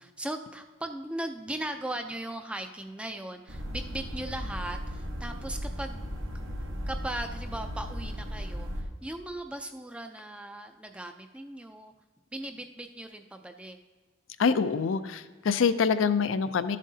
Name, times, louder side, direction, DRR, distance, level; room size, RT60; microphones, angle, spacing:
voice 1, 0.0-6.5 6.9-11.9 12.3-13.8 15.7-15.8, right 1 dB, 5° right, 6 dB, 0.4 m, -38 dB
sound 1, 3.5-8.8, equal, 80° right, 1.2 m, -36 dB
voice 2, 14.4-16.8, left 5 dB, 75° left, 11 dB, 0.5 m, -25 dB
13.0 x 7.4 x 2.7 m, 1.4 s
head